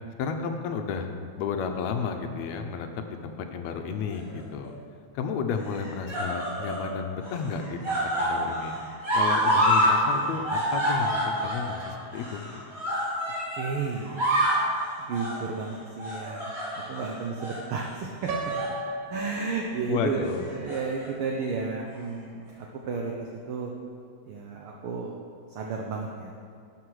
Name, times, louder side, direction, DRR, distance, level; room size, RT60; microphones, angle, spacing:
voice 1, 0.2-1.1 1.4-2.9 3.2-4.8 5.1-8.8 9.1-12.6 19.9-20.5, left 6 dB, 75° left, 5 dB, 1.9 m, -32 dB
sound 1, 4.1-4.7 5.6-6.9 7.2-10.0 10.2-13.7 14.0-14.7 15.1-15.4 16.0-17.0 17.4-17.6 18.3-18.8 19.1-19.3 20.4-21.1 21.9-22.0, equal, 30° right, 3.0 m, -27 dB
voice 2, 13.5-14.3 15.0-16.5 16.7-18.3 19.1-23.7 24.2-25.2 25.5-26.3, right 4 dB, 70° right, 0 dB, 1.3 m, -32 dB
Piano, 18.3-20.2, right 3 dB, 90° right, 2.3 m, -35 dB
12.0 x 7.2 x 4.8 m, 2.3 s
omnidirectional pair, 3.3 m